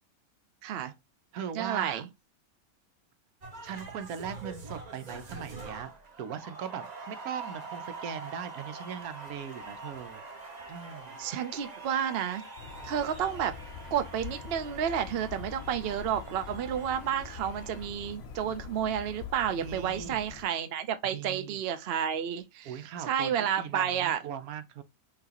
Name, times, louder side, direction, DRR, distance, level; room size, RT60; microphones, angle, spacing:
voice 1, 0.6-0.9 1.5-2.1 11.2-12.4 12.8-13.6 13.9-22.8 23.1-24.2, right 9 dB, 55° right, 0.8 m, -31 dB
voice 2, 1.3-2.0 3.6-5.9 6.2-10.2 10.7-11.2 19.6-20.2 21.0-21.6 22.6-24.8, right 8 dB, 80° right, 1.2 m, -39 dB
sound 1, 3.4-17.9, right 3 dB, 30° right, 1.1 m, -45 dB
sound 2, 12.6-20.4, left 7 dB, 55° left, 0.8 m, -44 dB
5.9 x 2.8 x 2.9 m
omnidirectional pair, 1.5 m